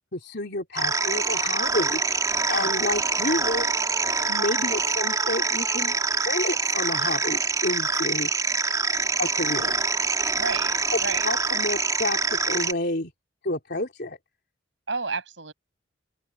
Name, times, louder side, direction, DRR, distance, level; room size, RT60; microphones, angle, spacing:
voice 1, 0.1-3.7 4.3-8.3 9.2-9.8 10.9-13.1 13.4-14.2, left 2 dB, 55° left, 3.6 m, -30 dB
sound 1, 0.8-12.7, right 4 dB, 20° right, 3.2 m, -25 dB
voice 2, 3.0-3.4 10.3-11.3 14.9-15.5, right 4 dB, 70° right, 6.7 m, -32 dB
open air
head